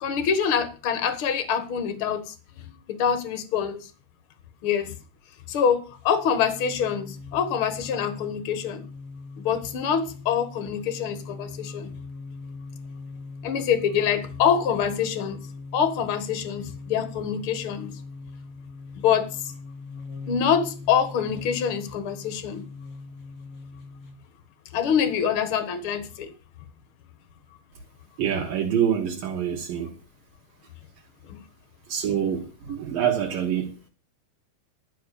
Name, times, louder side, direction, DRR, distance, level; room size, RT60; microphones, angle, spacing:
voice 1, 0.0-2.3 2.9-3.9 4.6-4.9 5.5-8.8 9.4-11.9 13.4-15.4 15.7-17.9 19.0-19.5 20.3-22.6 24.7-26.3 31.3-31.4, left 7 dB, 75° left, 1.2 m, -25 dB
sound 1, 5.9-24.2, left 4 dB, 45° left, 1.0 m, -40 dB
voice 2, 28.2-29.9 31.9-33.9, right 9 dB, 65° right, 2.9 m, -26 dB
12.5 x 5.6 x 8.3 m
omnidirectional pair, 4.6 m